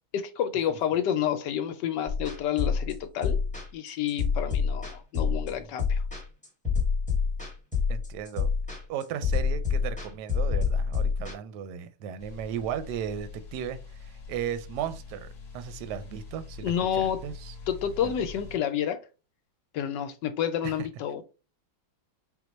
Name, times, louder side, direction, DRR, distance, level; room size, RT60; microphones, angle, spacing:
voice 1, 0.1-3.4 3.7-6.0 16.6-17.2 17.7-19.0 19.7-21.2, left 9 dB, 75° left, 1.1 m, -29 dB
sound 1, 2.1-11.3, left 5 dB, 5° left, 0.7 m, -27 dB
voice 2, 7.9-8.5 8.9-17.5 18.0-18.1 20.6-20.7, right 9 dB, 75° right, 1.0 m, -36 dB
sound 2, 12.2-18.6, left 4 dB, 50° left, 1.1 m, -44 dB
4.5 x 2.2 x 4.0 m
omnidirectional pair, 2.1 m